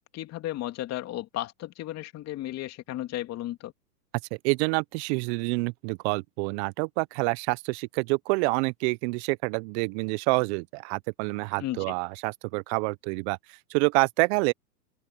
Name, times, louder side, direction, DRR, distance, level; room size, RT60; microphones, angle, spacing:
voice 1, 0.1-3.7 11.6-11.9, left 14 dB, 30° left, 2.8 m, -34 dB
voice 2, 4.4-14.5, right 28 dB, 40° right, 1.1 m, -27 dB
open air
hypercardioid pair, 115°, 50 cm